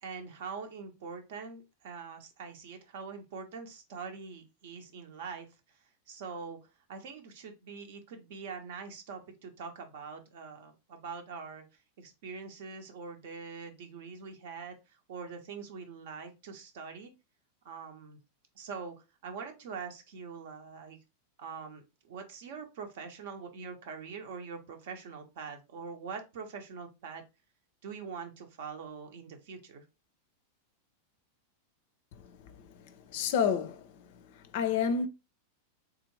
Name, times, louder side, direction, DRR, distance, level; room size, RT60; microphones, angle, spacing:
voice 1, 0.0-5.5 6.1-6.6 6.9-11.6 12.0-14.8 15.1-17.1 17.6-18.2 18.6-18.9 19.2-21.0 21.4-27.2 27.8-29.8, right 5 dB, 55° right, 0.8 m, -43 dB
voice 2, 33.1-33.8 34.5-35.1, left 7 dB, 50° left, 0.4 m, -28 dB
3.6 x 2.5 x 3.1 m
figure-of-eight pair, 90°, 0 cm